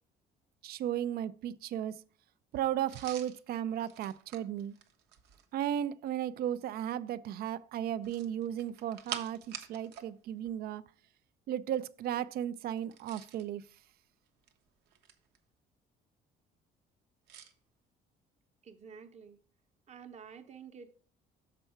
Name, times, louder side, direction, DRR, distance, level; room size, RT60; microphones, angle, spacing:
voice 1, 0.6-1.9 2.5-4.7 5.5-10.8 11.5-13.6, right 10 dB, 65° right, 0.4 m, -35 dB
sound 1, 2.9-5.5 8.0-10.1 10.4-10.5 12.8-13.5 14.3-15.4 17.3-17.5, right 9 dB, 90° right, 0.9 m, -47 dB
voice 2, 18.6-19.4 19.9-20.9, right 6 dB, 40° right, 0.9 m, -50 dB
6.8 x 4.6 x 5.6 m
cardioid pair, 110°, 17 cm